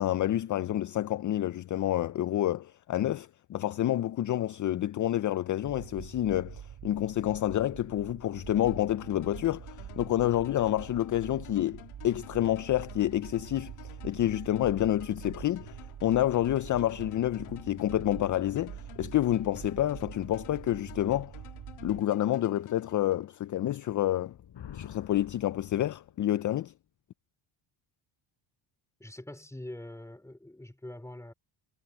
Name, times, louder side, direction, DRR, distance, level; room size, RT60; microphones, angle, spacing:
voice 1, 0.0-21.3 21.8-24.3 24.7-26.7, left 13 dB, 40° left, 0.4 m, -29 dB
sound 1, 5.6-22.0, right 10 dB, 60° right, 2.5 m, -45 dB
sound 2, 8.6-23.6, left 14 dB, 80° left, 1.6 m, -52 dB
Thunder, 24.2-26.5, left 9 dB, 60° left, 4.6 m, -48 dB
voice 2, 29.0-31.3, left 1 dB, 5° left, 2.7 m, -44 dB
cardioid pair, 110°, 49 cm